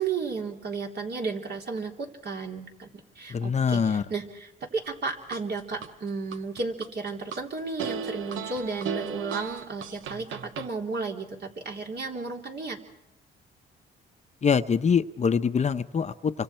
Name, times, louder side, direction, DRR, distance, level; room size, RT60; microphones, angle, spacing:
voice 1, 0.0-12.8, right 4 dB, 55° right, 1 dB, 3.5 m, -33 dB
voice 2, 3.3-4.0 14.4-16.3, left 6 dB, 35° left, 10 dB, 0.8 m, -24 dB
sound 1, 4.9-5.9 6.3-7.4 7.8-10.7, right 7 dB, 85° right, 1.0 m, -35 dB
29.0 x 25.0 x 4.5 m, 0.89 s
cardioid pair, 90°, 20 cm